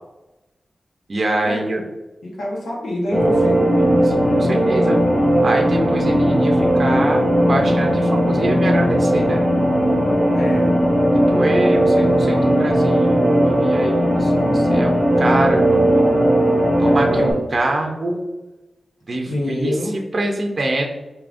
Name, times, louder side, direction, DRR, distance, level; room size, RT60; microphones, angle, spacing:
voice 1, 1.1-1.8 3.8-5.0 5.4-9.4 11.3-16.0 16.8-18.2 19.1-20.9, right 1 dB, 40° right, 1 dB, 0.6 m, -24 dB
voice 2, 2.2-3.6 10.3-10.7 19.2-19.9, left 1 dB, 90° left, -2 dB, 1.1 m, -25 dB
sound 1, 3.1-17.3, equal, 5° left, 1.4 m, -17 dB
4.8 x 2.8 x 2.5 m, 1.0 s
wide cardioid pair, 110°, 0 cm